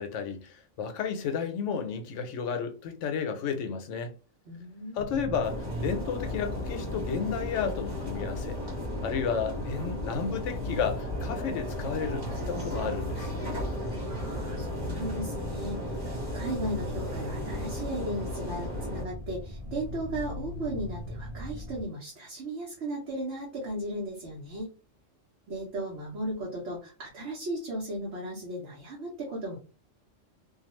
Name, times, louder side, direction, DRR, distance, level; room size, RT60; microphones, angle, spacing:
voice 1, 0.0-4.1 4.9-8.6 9.0-13.3, left 6 dB, 75° left, 0.9 m, -32 dB
voice 2, 4.5-5.0 14.0-24.7 25.5-29.6, right 1 dB, 65° right, 1.1 m, -36 dB
sound 1, 5.0-21.8, equal, 45° right, 0.4 m, -39 dB
sound 2, 5.4-19.0, left 1 dB, 20° right, 1.2 m, -35 dB
2.5 x 2.3 x 3.0 m
omnidirectional pair, 1.3 m